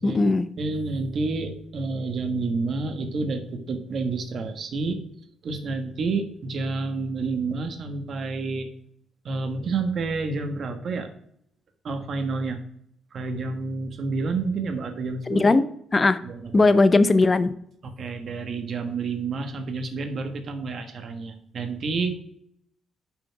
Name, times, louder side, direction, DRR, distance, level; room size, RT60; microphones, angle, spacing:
voice 1, 0.0-0.5 15.3-15.7 15.9-16.2 16.5-17.5, left 3 dB, 30° left, 14 dB, 0.6 m, -18 dB
voice 2, 0.6-5.0 5.4-8.7 9.2-11.1 11.8-12.6 13.1-15.4 16.2-16.6 17.8-22.1, right 3 dB, 55° right, 6 dB, 1.3 m, -29 dB
5.8 x 5.2 x 5.8 m, 0.70 s
cardioid pair, 90°, 0 cm